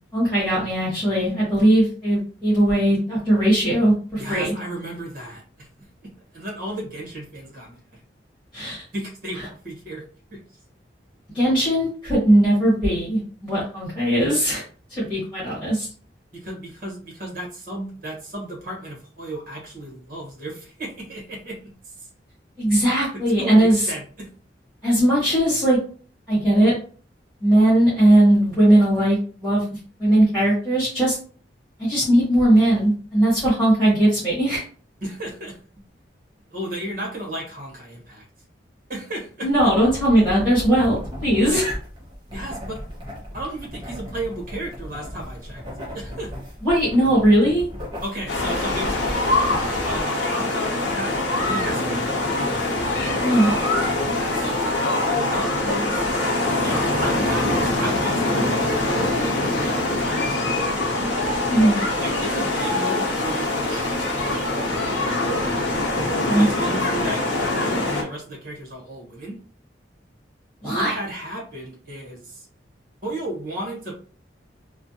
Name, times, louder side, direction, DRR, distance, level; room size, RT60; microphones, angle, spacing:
voice 1, 0.1-4.5 8.5-8.8 11.3-14.6 14.9-15.9 22.6-23.9 24.8-25.8 26.3-26.7 27.4-29.6 30.0-31.1 31.8-34.6 39.4-41.7 46.6-47.7 53.2-53.6 54.4-54.5 61.5-61.8 66.1-66.4 70.6-70.9, right 1 dB, 5° left, -9 dB, 1.5 m, -19 dB
voice 2, 4.2-8.0 8.9-10.0 10.3-10.4 16.3-22.1 23.1-24.3 35.0-35.6 36.5-38.3 38.9-39.7 42.3-42.8 43.3-45.6 45.9-46.3 48.0-49.2 49.8-52.3 52.6-52.7 53.3-53.4 54.1-54.5 54.9-56.0 56.6-61.0 62.0-65.5 66.3-69.4 70.6-72.5 73.0-73.9, right 1 dB, 50° right, -2 dB, 1.2 m, -34 dB
sound 1, 39.5-50.0, equal, 25° right, 1.0 m, -36 dB
sound 2, 48.3-68.0, left 2 dB, 85° left, 0.8 m, -23 dB
3.2 x 2.2 x 2.7 m, 0.42 s
head